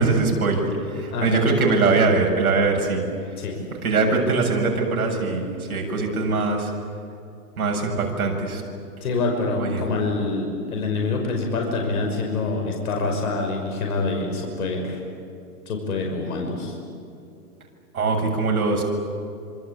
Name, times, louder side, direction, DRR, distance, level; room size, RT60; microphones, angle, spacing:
voice 1, 0.0-3.0 3.8-6.7 7.6-8.6 9.6-9.8 17.9-18.8, right 3 dB, 70° right, 1 dB, 7.5 m, -22 dB
voice 2, 1.1-1.4 3.4-3.6 9.0-15.0 15.7-16.7, left 3 dB, 70° left, 2 dB, 5.8 m, -26 dB
26.5 x 26.0 x 8.5 m, 2.6 s
hypercardioid pair, 140°, 45 cm